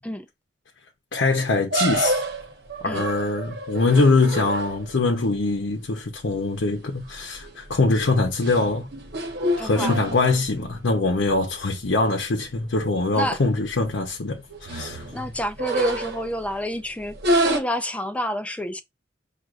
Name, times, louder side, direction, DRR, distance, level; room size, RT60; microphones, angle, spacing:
voice 1, 1.1-2.2 2.8-8.9 9.6-15.1, left 3 dB, 80° left, 0.8 m, -23 dB
sound 1, 1.7-5.0 6.7-7.0 7.4-7.7 8.2-10.7 11.1-11.2 11.5-11.6 12.5-12.6 12.9-13.0 13.3-13.7 14.3-16.5 17.2-17.6, right 1 dB, 60° right, 1.1 m, -27 dB
voice 2, 9.6-9.9 13.1-13.4 15.1-17.2 17.5-18.8, equal, 5° left, 0.4 m, -28 dB
6.1 x 2.4 x 2.4 m
head